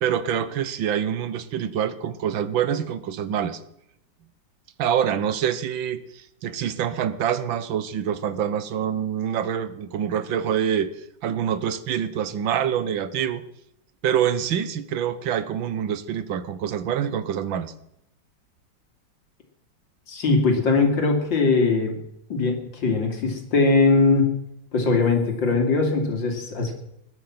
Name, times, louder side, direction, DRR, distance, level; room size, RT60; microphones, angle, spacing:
voice 1, 0.0-3.6 4.8-10.9 11.2-13.4 14.0-17.7, right 9 dB, 80° right, 14 dB, 1.7 m, -26 dB
voice 2, 20.1-22.0 22.3-24.3 24.7-26.8, left 3 dB, 70° left, 3 dB, 3.4 m, -21 dB
21.0 x 9.3 x 5.9 m, 0.80 s
omnidirectional pair, 2.1 m